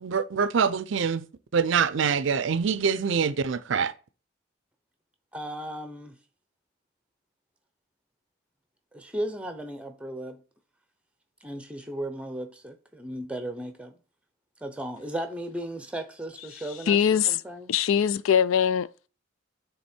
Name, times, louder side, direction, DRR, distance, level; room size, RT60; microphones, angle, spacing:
voice 1, 0.0-1.3 1.5-3.9, right 6 dB, 65° right, 0.5 m, -25 dB
voice 2, 5.3-6.2 8.9-10.4 11.4-13.9 14.6-17.0 17.3-17.7, right 1 dB, 5° right, 0.7 m, -35 dB
voice 3, 16.9-17.4 17.7-19.1, left 8 dB, 80° left, 0.4 m, -22 dB
9.4 x 3.5 x 4.4 m
head